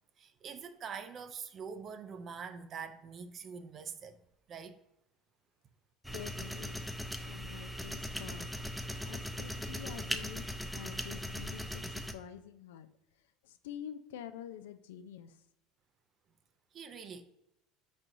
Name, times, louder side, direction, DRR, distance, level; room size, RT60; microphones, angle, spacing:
voice 1, 0.2-4.2 4.5-4.8 16.7-17.2, right 6 dB, 45° right, 0.5 m, -44 dB
sound 1, 6.0-12.1, left 1 dB, ahead, 0.5 m, -39 dB
voice 2, 6.1-6.9 7.2-8.5 9.0-12.9 13.4-15.4, left 10 dB, 85° left, 0.3 m, -48 dB
4.6 x 4.2 x 2.6 m
hypercardioid pair, 80°, 0 cm